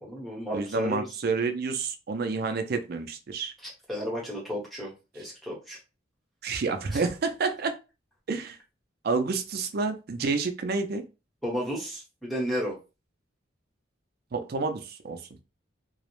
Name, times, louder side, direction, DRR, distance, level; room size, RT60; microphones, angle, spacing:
voice 1, 0.0-1.1 3.6-5.8 6.9-7.0 11.4-12.8, equal, ahead, -4 dB, 0.9 m, -33 dB
voice 2, 0.5-3.5 6.4-7.7 8.3-8.6 9.0-11.0 14.3-15.2, right 4 dB, 55° right, 7 dB, 0.4 m, -29 dB
2.4 x 2.0 x 3.0 m, 0.29 s
head